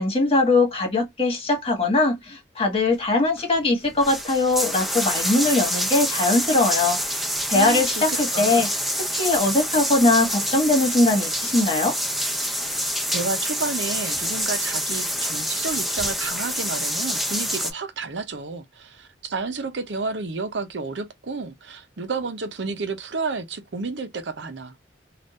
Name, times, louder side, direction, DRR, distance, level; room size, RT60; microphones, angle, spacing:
voice 1, 0.0-7.0 7.5-8.7 9.1-12.0, left 2 dB, 35° left, 1.6 m, -21 dB
sound 1, 3.4-3.5 3.8-17.7, equal, ahead, 0.8 m, -27 dB
voice 2, 7.5-8.7 13.1-24.8, right 4 dB, 85° right, 0.7 m, -31 dB
3.5 x 2.5 x 2.5 m
head